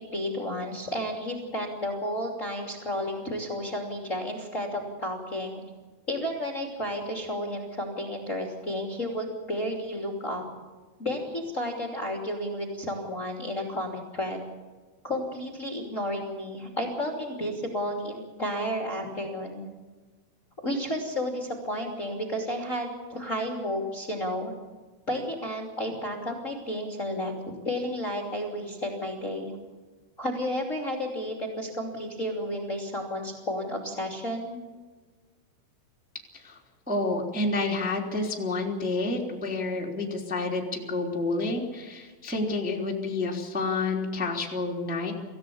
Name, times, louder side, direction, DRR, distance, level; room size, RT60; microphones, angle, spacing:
voice 1, 0.1-5.6 6.1-10.4 11.0-14.4 15.0-19.7 20.6-24.5 25.1-29.6 30.2-34.6, equal, 20° left, 0 dB, 2.6 m, -32 dB
voice 2, 36.9-45.1, left 3 dB, ahead, -1 dB, 2.5 m, -29 dB
26.5 x 16.0 x 7.2 m, 1.3 s
omnidirectional pair, 4.7 m